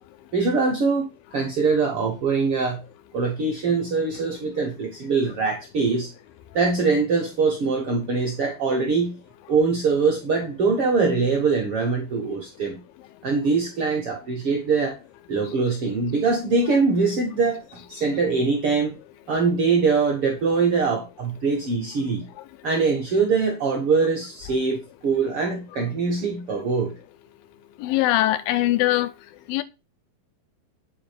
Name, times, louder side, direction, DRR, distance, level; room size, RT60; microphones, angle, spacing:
voice 1, 0.3-1.1 1.3-2.8 3.1-6.1 6.5-9.1 9.5-12.8 13.2-15.0 15.3-18.9 19.3-22.2 22.6-26.9, right 4 dB, 60° right, 1.5 m, -23 dB
voice 2, 27.8-29.1 29.5-29.6, left 15 dB, 80° left, 2.3 m, -21 dB
8.9 x 3.9 x 5.0 m
omnidirectional pair, 4.3 m